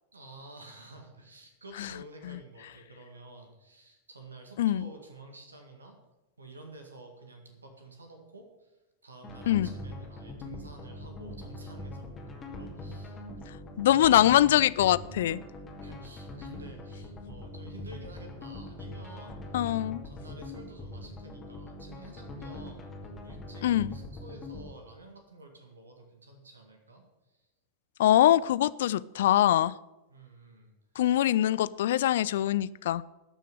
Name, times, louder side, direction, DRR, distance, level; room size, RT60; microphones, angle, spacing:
voice 1, 0.1-6.0 6.4-13.2 15.8-19.4 20.0-22.9 23.2-27.4 30.1-30.7 31.1-31.2, right 2 dB, 75° right, 3 dB, 1.9 m, -50 dB
voice 2, 4.6-4.9 9.5-9.7 13.8-15.4 19.5-20.0 23.6-23.9 28.0-29.8 31.0-33.0, left 12 dB, 55° left, 20 dB, 0.3 m, -23 dB
sound 1, 9.2-24.7, left 1 dB, 25° left, 2.3 m, -42 dB
12.5 x 6.5 x 7.8 m, 1.0 s
figure-of-eight pair, 90°, 0 cm